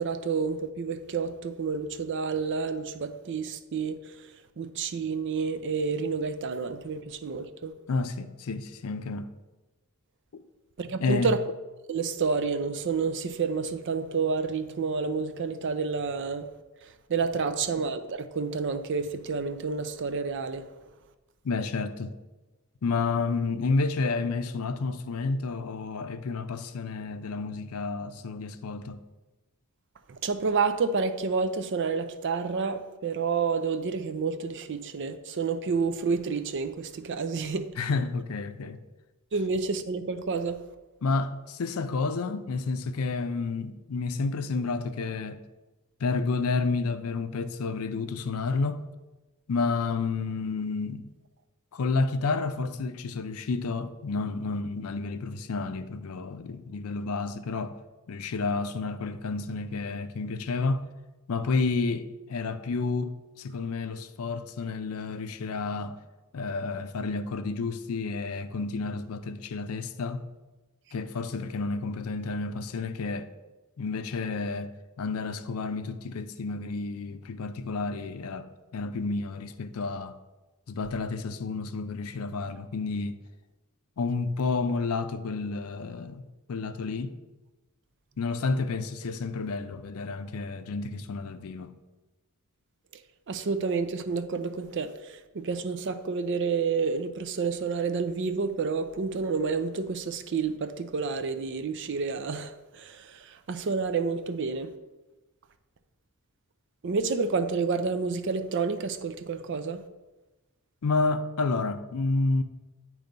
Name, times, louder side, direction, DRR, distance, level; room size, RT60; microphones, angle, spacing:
voice 1, 0.0-4.3 4.6-7.8 10.8-11.4 11.9-16.5 16.8-20.7 30.1-37.7 39.3-40.6 93.3-104.7 106.8-109.8, right 5 dB, 55° right, 0.5 m, -29 dB
voice 2, 7.9-9.3 10.3-10.4 11.0-11.3 21.4-22.1 22.8-29.0 37.8-38.8 41.0-45.4 46.0-48.8 49.5-51.1 51.7-57.8 58.1-60.8 61.3-66.0 66.3-70.2 70.9-73.3 73.8-74.7 75.0-80.1 80.7-83.1 84.0-86.2 86.5-87.1 88.2-91.7 110.8-112.4, left 4 dB, 75° left, 0.5 m, -30 dB
8.9 x 3.1 x 5.2 m
head